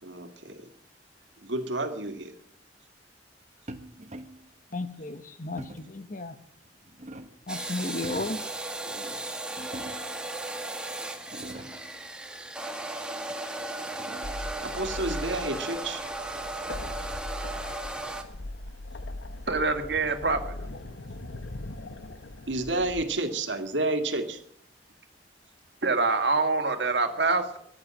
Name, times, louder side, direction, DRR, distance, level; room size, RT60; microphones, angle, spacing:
voice 1, 0.0-0.7 1.4-2.3 8.9-9.2 11.4-11.8 14.4-16.0 22.5-24.4, right 2 dB, 90° right, 2.1 m, -31 dB
sound 1, 3.7-4.5 5.6-6.0 6.6-7.5 7.9-8.5 9.6-10.3 10.8-10.9 11.2-11.9 13.3-14.5, right 1 dB, 40° right, 1.2 m, -44 dB
voice 2, 4.7-6.4 7.5-8.4, left 2 dB, 45° left, 1.1 m, -34 dB
sound 2, 7.5-18.2, right 2 dB, 5° right, 1.5 m, -36 dB
sound 3, 14.2-23.0, left 1 dB, 90° left, 1.1 m, -40 dB
voice 3, 19.5-20.5 25.8-27.6, right 3 dB, 65° right, 2.0 m, -25 dB
14.5 x 11.0 x 7.6 m
head